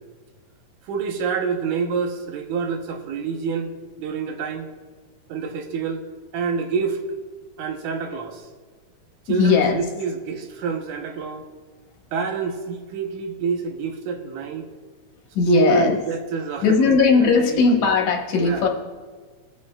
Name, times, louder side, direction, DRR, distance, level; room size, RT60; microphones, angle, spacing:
voice 1, 0.9-3.7 4.0-4.7 5.3-6.0 6.3-7.0 7.6-8.4 9.3-11.4 12.1-14.7 15.5-17.9 18.4-18.7, right 5 dB, 80° right, 4 dB, 2.4 m, -27 dB
voice 2, 9.3-9.8 15.3-16.0 16.6-18.7, left 5 dB, 70° left, 1 dB, 2.5 m, -18 dB
22.5 x 8.6 x 2.3 m, 1.5 s
omnidirectional pair, 3.6 m